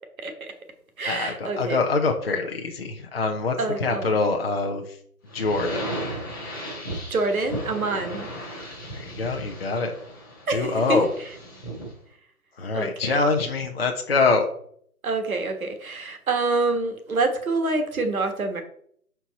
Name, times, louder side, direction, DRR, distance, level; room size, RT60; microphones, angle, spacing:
voice 1, 0.2-0.5 1.0-1.8 3.6-4.3 7.1-8.3 10.5-11.1 12.7-13.2 15.0-18.6, right 3 dB, 65° right, 6 dB, 1.4 m, -26 dB
voice 2, 1.0-3.6 3.8-5.0 5.3-5.9 8.9-9.9 10.5-11.1 12.6-14.5, left 3 dB, 40° left, 3 dB, 0.6 m, -24 dB
sound 1, 5.3-12.0, right 1 dB, 15° left, 0.9 m, -35 dB
5.9 x 4.5 x 4.0 m, 0.63 s
hypercardioid pair, 170°, 46 cm